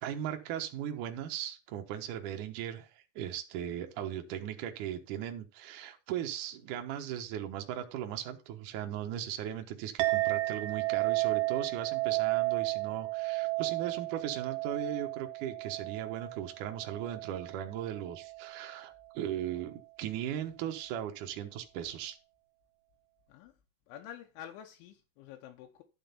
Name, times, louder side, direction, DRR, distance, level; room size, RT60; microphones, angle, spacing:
voice 1, 0.0-22.2, right 10 dB, 75° right, 1.9 m, -38 dB
Chink clink, 10.0-18.7, right 22 dB, 90° right, 2.2 m, -33 dB
voice 2, 23.9-25.8, left 10 dB, 85° left, 3.4 m, -48 dB
11.5 x 3.9 x 6.8 m
omnidirectional pair, 5.3 m